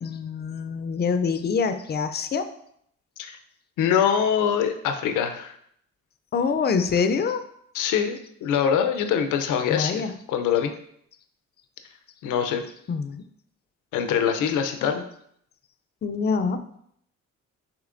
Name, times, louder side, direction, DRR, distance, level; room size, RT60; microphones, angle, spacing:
voice 1, 0.0-2.5 6.3-7.4 9.7-10.1 12.9-13.2 16.0-16.6, left 5 dB, 35° left, 10 dB, 0.4 m, -25 dB
voice 2, 3.8-5.5 7.7-10.0 10.3-10.7 12.2-12.6 13.9-15.0, left 8 dB, 85° left, 6 dB, 0.6 m, -24 dB
6.4 x 3.1 x 2.5 m, 0.69 s
cardioid pair, 90°, 30 cm